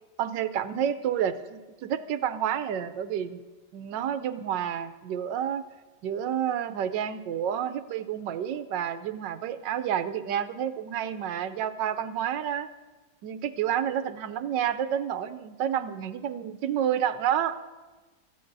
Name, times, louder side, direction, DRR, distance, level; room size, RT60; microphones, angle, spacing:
voice 1, 0.2-3.4 3.7-5.7 6.0-12.7 13.2-17.6, right 9 dB, 85° right, 12 dB, 1.4 m, -29 dB
23.0 x 14.5 x 2.7 m, 1.3 s
omnidirectional pair, 1.9 m